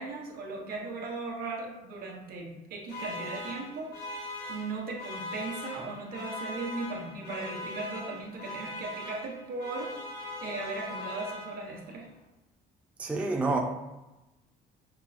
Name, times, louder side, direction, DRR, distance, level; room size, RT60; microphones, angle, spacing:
voice 1, 0.0-4.1 4.5-9.9 10.2-12.1, right 3 dB, 60° right, 0 dB, 0.9 m, -37 dB
sound 1, 2.9-11.9, left 1 dB, 75° left, 0.8 m, -40 dB
voice 2, 13.0-13.6, right 3 dB, 5° right, 0 dB, 0.4 m, -28 dB
5.8 x 2.0 x 2.4 m, 1.0 s
cardioid pair, 110°, 17 cm